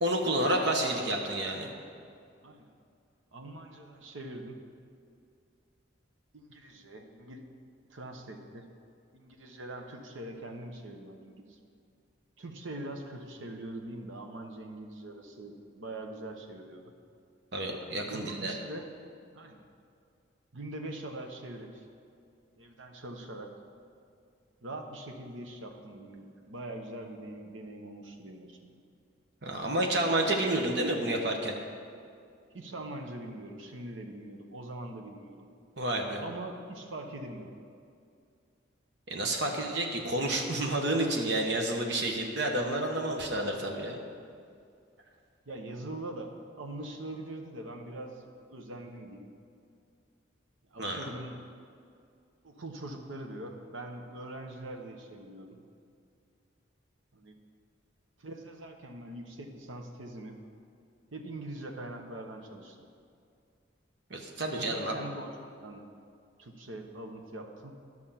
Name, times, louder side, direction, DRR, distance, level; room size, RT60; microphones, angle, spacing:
voice 1, 0.0-1.7 17.5-18.5 29.4-31.6 35.8-36.2 39.1-44.0 50.8-51.0 64.1-64.9, right 1 dB, 60° right, 2 dB, 1.2 m, -30 dB
voice 2, 2.4-2.7 3.3-4.6 6.3-7.4 7.9-8.7 9.1-11.6 12.4-16.9 18.1-18.9 19.3-19.7 20.5-21.9 22.6-23.6 24.6-28.8 32.5-35.5 36.2-37.6 45.5-48.2 48.5-49.3 50.7-51.4 52.4-55.6 57.1-57.4 58.2-60.4 61.1-62.9 64.4-65.9 66.4-67.8, right 1 dB, 90° right, 4 dB, 1.0 m, -43 dB
11.0 x 6.2 x 5.7 m, 2.3 s
head